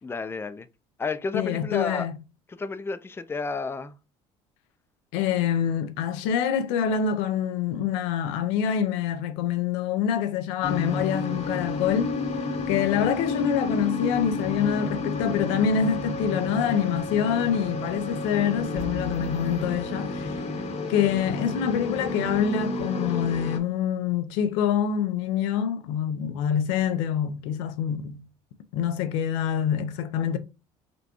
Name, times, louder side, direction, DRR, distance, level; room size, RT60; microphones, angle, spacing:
voice 1, 0.0-0.7 1.0-2.1 2.5-4.0, left 4 dB, 15° left, 0.4 m, -31 dB
voice 2, 1.3-2.1 5.1-12.2 12.7-20.4 20.9-28.2 28.7-30.4, left 8 dB, 90° left, 0.5 m, -26 dB
sound 1, 10.6-23.6, left 3 dB, 50° left, 0.9 m, -31 dB
sound 2, 18.7-20.8, right 2 dB, 75° right, 1.6 m, -43 dB
5.1 x 2.3 x 2.9 m
supercardioid pair, 80°, 15 cm